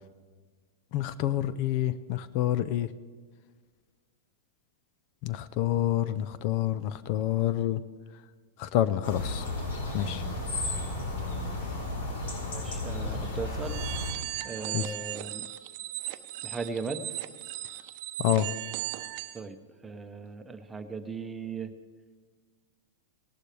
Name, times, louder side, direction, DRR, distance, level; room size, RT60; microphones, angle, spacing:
voice 1, 0.9-2.9 5.2-7.8 8.6-9.5 9.9-10.2 14.7-14.9 18.2-18.5, left 12 dB, 50° left, 15 dB, 0.5 m, -28 dB
sound 1, 9.0-14.1, left 2 dB, 75° left, 3.8 m, -33 dB
voice 2, 12.5-13.8 14.4-15.5 16.4-17.0 19.3-19.6 19.8-21.7, right 4 dB, 10° right, 7 dB, 0.9 m, -37 dB
sound 2, 13.6-19.4, right 16 dB, 50° right, 0.7 m, -37 dB
18.0 x 11.5 x 3.4 m, 1.5 s
hypercardioid pair, 125°, 0 cm